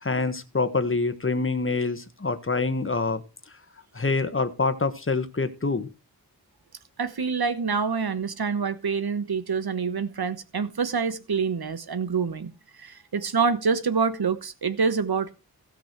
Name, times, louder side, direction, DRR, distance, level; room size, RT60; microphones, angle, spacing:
voice 1, 0.0-3.2 3.9-5.9, left 3 dB, 35° left, 1.4 m, -26 dB
voice 2, 7.0-15.3, right 5 dB, 75° right, 1.3 m, -26 dB
16.5 x 6.2 x 4.6 m
wide cardioid pair, 75°, 38 cm